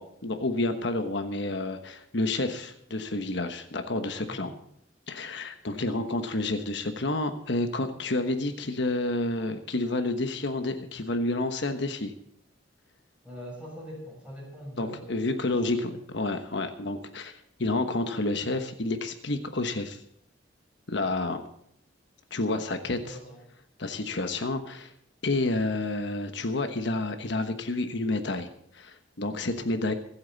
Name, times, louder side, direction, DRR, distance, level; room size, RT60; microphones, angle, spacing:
voice 1, 0.0-4.5 5.1-12.1 14.8-20.0 20.9-21.4 22.3-23.0 23.8-24.9 25.2-28.5 28.7-29.9, left 2 dB, 65° left, 7 dB, 1.2 m, -29 dB
voice 2, 4.2-4.5 13.2-15.7 22.9-23.4, equal, 5° right, -3 dB, 6.8 m, -43 dB
25.5 x 8.7 x 4.1 m, 0.72 s
head